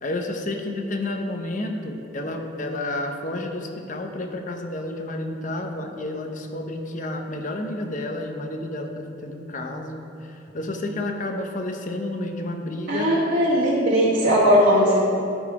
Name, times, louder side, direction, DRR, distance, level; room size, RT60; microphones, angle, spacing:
voice 1, 0.0-13.1, left 1 dB, 45° left, 4 dB, 0.8 m, -30 dB
voice 2, 12.9-15.0, equal, 60° right, -8 dB, 1.6 m, -18 dB
12.0 x 4.2 x 4.8 m, 2.7 s
head